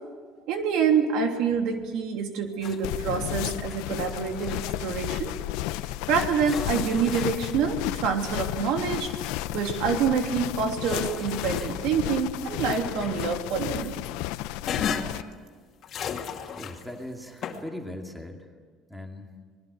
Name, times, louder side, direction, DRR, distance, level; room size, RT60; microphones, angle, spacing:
voice 1, 0.5-5.3 6.1-9.1 9.5-14.0, right 6 dB, 70° right, 4 dB, 3.1 m, -27 dB
sound 1, 2.6-3.4 3.7-4.9 5.9-6.0 6.4-7.6 8.2-9.6 10.2-12.2 12.5-14.1 14.7-15.3 15.8-17.0 17.4-17.6, left 7 dB, 45° left, 2.5 m, -37 dB
sound 2, 2.8-15.2, left 15 dB, 85° left, 0.8 m, -33 dB
voice 2, 16.6-18.5 18.9-19.3, left 1 dB, ahead, 3 dB, 2.4 m, -39 dB
26.5 x 20.5 x 8.1 m, 1.5 s
cardioid pair, 130°, 0 cm